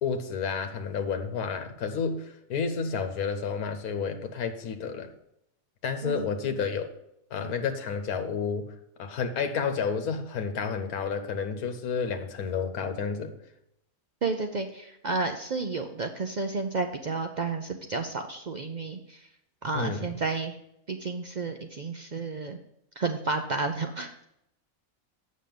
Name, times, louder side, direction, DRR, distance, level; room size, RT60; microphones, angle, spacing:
voice 1, 0.0-5.1 5.8-6.9 7.3-8.7 9.0-13.3 19.7-20.1, left 6 dB, 90° left, 7 dB, 1.4 m, -30 dB
voice 2, 14.2-19.3 19.6-20.6 20.9-22.6 23.0-24.2, right 3 dB, 60° right, 5 dB, 0.4 m, -31 dB
7.5 x 6.2 x 5.3 m, 0.77 s
omnidirectional pair, 1.5 m